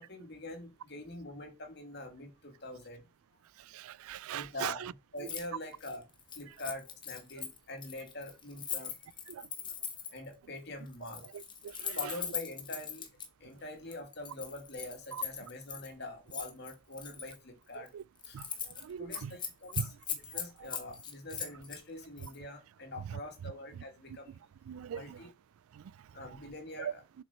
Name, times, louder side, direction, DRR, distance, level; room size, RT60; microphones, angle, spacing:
voice 1, 0.0-3.1 4.3-6.0 6.3-9.2 10.1-11.3 11.9-13.1 13.4-17.9 18.3-18.4 19.0-19.9 20.3-24.3 24.9-25.3 26.1-27.0, left 2 dB, 50° left, 2.4 m, -44 dB
voice 2, 3.7-4.9 5.2-5.3 9.3-9.5 11.3-12.1 15.1-15.2 17.8-18.0 18.3-18.5 18.8-19.4 19.8-19.9 20.6-20.7 22.2-22.3 23.0-23.2 24.7-25.2 25.7-25.8 26.2-26.4 26.8-26.9, right 8 dB, 85° right, 0.3 m, -40 dB
Keys jangling, 5.2-5.5 5.7-10.3 10.9-13.3 13.9-15.9 16.3-17.4 17.7-17.9 18.2-18.8 19.1-21.8 22.2-22.4, left 7 dB, 20° left, 1.2 m, -40 dB
7.2 x 5.9 x 4.4 m
head